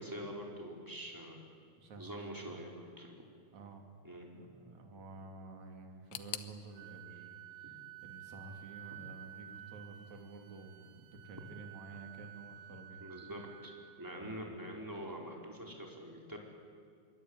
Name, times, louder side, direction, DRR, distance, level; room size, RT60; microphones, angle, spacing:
voice 1, 0.0-1.4 2.0-3.3 4.0-4.3 7.6-7.7 13.0-13.7 14.0-16.4, equal, 5° right, 0 dB, 3.9 m, -45 dB
voice 2, 1.8-2.6 3.5-3.9 4.3-13.0 14.2-14.4, right 3 dB, 40° right, 3 dB, 4.0 m, -51 dB
sound 1, 6.1-9.0 9.2-10.1 10.3-10.4 11.3-11.4, left 14 dB, 75° left, 3.0 m, -49 dB
Wind instrument woodwind instrument, 6.7-14.5, right 13 dB, 80° right, 3.4 m, -53 dB
25.5 x 23.5 x 9.8 m, 2.2 s
omnidirectional pair, 5.4 m